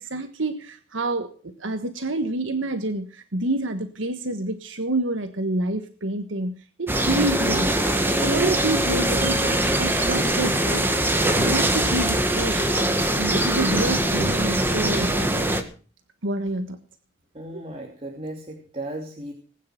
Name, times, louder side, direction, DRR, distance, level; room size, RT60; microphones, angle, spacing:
voice 1, 0.0-7.9 8.2-12.7 13.1-15.1 16.2-16.8 17.5-17.6, right 2 dB, 80° right, 8 dB, 1.5 m, -28 dB
sound 1, 6.9-15.6, right 1 dB, 10° right, 1.9 m, -22 dB
voice 2, 17.3-19.3, right 1 dB, 30° right, 1 dB, 2.8 m, -35 dB
20.0 x 9.6 x 6.0 m, 0.40 s
head